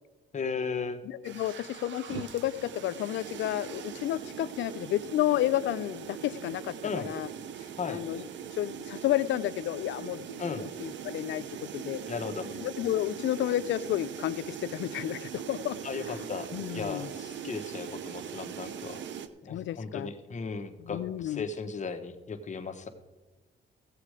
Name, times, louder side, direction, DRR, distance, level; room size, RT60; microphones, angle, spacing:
voice 1, 0.3-1.0 6.8-7.1 7.8-8.0 10.4-10.6 12.1-12.5 15.8-16.5 16.7-19.0 19.4-22.9, left 5 dB, 35° left, 6 dB, 1.2 m, -36 dB
voice 2, 1.0-7.3 7.6-8.3 8.6-12.0 12.4-15.8 16.1-16.3 16.5-17.1 19.5-20.1 20.8-21.5, left 13 dB, 75° left, 16 dB, 0.5 m, -31 dB
sound 1, 1.2-19.3, right 8 dB, 65° right, 0.8 m, -41 dB
16.0 x 7.5 x 4.9 m, 1.2 s
cardioid pair, 90°, 20 cm